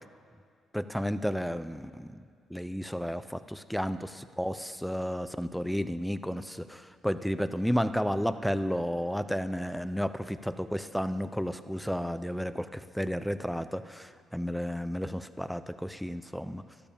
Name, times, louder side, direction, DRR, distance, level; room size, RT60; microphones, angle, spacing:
voice 1, 0.7-2.2 2.5-16.6, equal, ahead, 12 dB, 0.6 m, -32 dB
12.5 x 12.0 x 7.1 m, 2.2 s
cardioid pair, 90°, 0 cm